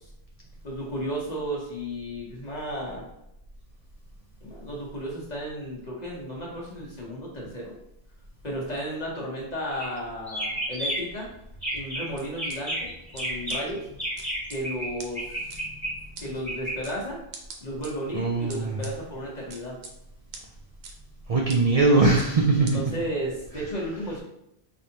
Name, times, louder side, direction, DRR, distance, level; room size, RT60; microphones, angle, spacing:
voice 1, 0.6-3.1 4.4-7.8 8.4-11.3 11.7-13.9 14.5-15.4 16.2-17.2 17.6-19.8 22.6-24.2, equal, 40° left, -4 dB, 1.1 m, -33 dB
sound 1, 9.7-10.0 10.3-11.2 11.5-12.1 12.4-14.9 15.1-16.7, right 1 dB, ahead, 1.3 m, -31 dB
sound 2, 12.2-12.6 13.2-13.3 13.5-13.6 14.2-14.6 15.0-15.1 15.5-15.6 16.2-16.3 16.8-17.0 17.3-17.9 18.5-18.9 19.5-19.9 20.3-20.4 20.8-20.9 21.5-21.6 22.2-22.3 22.7-22.8, right 4 dB, 75° right, 0.9 m, -41 dB
voice 2, 18.1-18.8 21.3-22.8, right 3 dB, 50° right, 0 dB, 0.4 m, -21 dB
4.8 x 2.6 x 2.8 m, 0.83 s
omnidirectional pair, 1.1 m